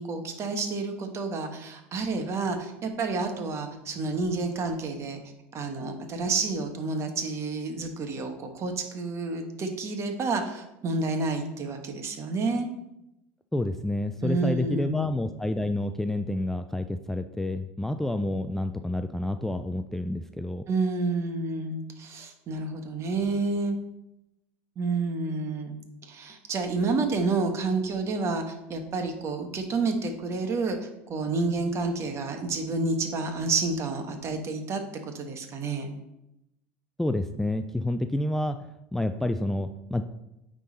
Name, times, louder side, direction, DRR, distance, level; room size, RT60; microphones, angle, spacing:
voice 1, 0.0-5.2 5.5-12.7 14.2-15.0 20.7-23.8 24.8-25.8 26.1-30.8 31.1-35.9, right 3 dB, 40° right, 5 dB, 1.3 m, -29 dB
voice 2, 13.5-20.7 37.0-40.0, left 1 dB, 5° left, 8 dB, 0.3 m, -29 dB
9.2 x 3.8 x 4.1 m, 0.88 s
hypercardioid pair, 90°, 7 cm